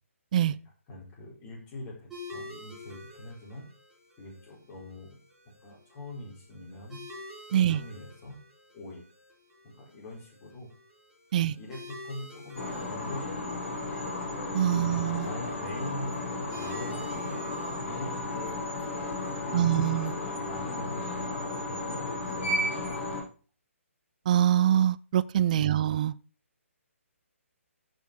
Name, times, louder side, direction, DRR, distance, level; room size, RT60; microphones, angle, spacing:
voice 1, 0.9-3.7 4.2-5.2 5.4-7.0 7.5-8.4 8.7-9.0 9.6-10.7 11.3-13.7 14.6-17.4 17.8-18.8 19.4-23.2 25.5-25.7, left 1 dB, 20° left, 4.9 m, -43 dB
sound 1, 2.1-21.2, left 2 dB, 5° right, 6.0 m, -50 dB
sound 2, 12.5-23.2, left 2 dB, 45° left, 7.2 m, -34 dB
voice 2, 14.5-15.3 19.5-20.1 24.3-26.1, right 11 dB, 35° right, 0.4 m, -24 dB
14.0 x 7.0 x 4.7 m
figure-of-eight pair, 135°, 8 cm